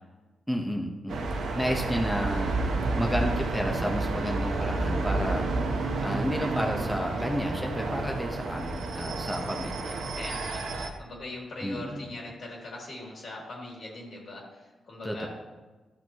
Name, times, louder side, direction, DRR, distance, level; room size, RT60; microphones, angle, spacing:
voice 1, 0.5-1.3 1.6-2.5 2.9-5.4 6.0-10.0 11.6-12.1 15.0-15.3, equal, 5° left, 1 dB, 1.1 m, -31 dB
sound 1, 1.1-10.9, right 3 dB, 85° right, 1.0 m, -30 dB
voice 2, 10.2-10.6 11.0-15.3, left 2 dB, 65° left, -3 dB, 3.0 m, -41 dB
13.0 x 5.9 x 3.1 m, 1.2 s
cardioid pair, 70°, 0 cm